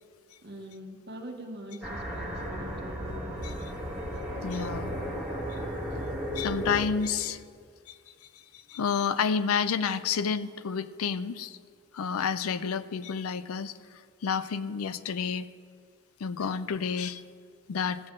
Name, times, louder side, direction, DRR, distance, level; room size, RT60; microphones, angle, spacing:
voice 1, 0.4-3.0, right 1 dB, 50° right, 2 dB, 1.2 m, -43 dB
sound 1, 1.8-6.9, equal, 5° right, 1.8 m, -34 dB
voice 2, 4.4-4.9 6.4-7.4 7.9-8.0 8.7-11.6 11.9-13.7 14.2-15.5 16.2-17.2 17.7-18.0, left 6 dB, 85° left, 14 dB, 0.4 m, -29 dB
15.5 x 7.6 x 3.8 m, 2.1 s
head